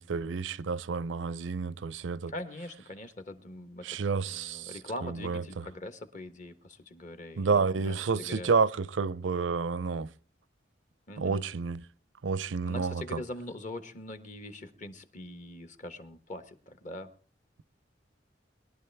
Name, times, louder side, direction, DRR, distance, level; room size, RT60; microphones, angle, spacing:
voice 1, 0.0-2.3 3.8-4.7 5.0-5.4 7.4-10.1 11.2-11.8 12.2-13.2, right 5 dB, 85° right, 0.5 m, -30 dB
voice 2, 2.3-8.5 11.1-11.4 12.6-17.1, left 1 dB, 40° left, 1.2 m, -42 dB
21.5 x 11.5 x 3.4 m
head